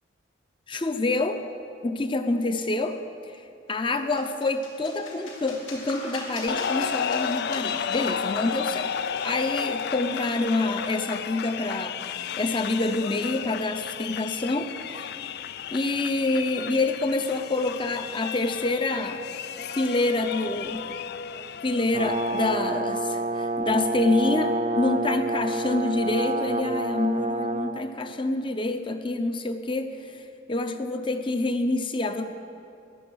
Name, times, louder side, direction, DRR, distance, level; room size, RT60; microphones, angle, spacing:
voice 1, 0.7-1.4 1.8-3.4 3.7-8.9 9.2-15.1 15.7-19.2 19.7-21.0 21.6-32.2, left 2 dB, 25° left, 8 dB, 0.6 m, -27 dB
sound 1, 3.9-11.4, left 3 dB, 85° left, 2.8 m, -42 dB
sound 2, 6.5-22.6, left 8 dB, 50° left, 0.3 m, -33 dB
Brass instrument, 21.9-27.7, right 2 dB, 35° right, 0.6 m, -28 dB
14.5 x 10.5 x 6.5 m, 2.7 s
head